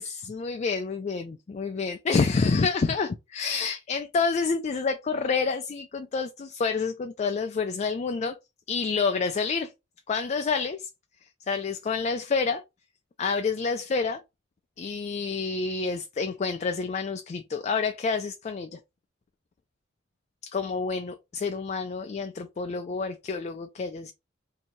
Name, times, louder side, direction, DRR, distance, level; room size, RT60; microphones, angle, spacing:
voice 1, 0.0-8.4 8.7-9.7 10.1-10.9 11.5-12.6 13.2-14.2 14.8-18.8 20.5-24.1, left 4 dB, 35° left, 0.3 m, -28 dB
2.8 x 2.7 x 4.3 m
head